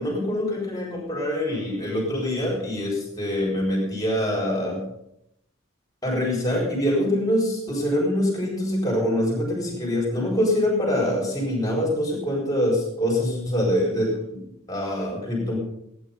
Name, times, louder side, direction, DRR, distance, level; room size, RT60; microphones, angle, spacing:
voice 1, 0.0-4.9 6.0-14.4 14.7-15.6, left 1 dB, 15° left, -2 dB, 4.7 m, -24 dB
16.5 x 9.9 x 5.4 m, 0.77 s
head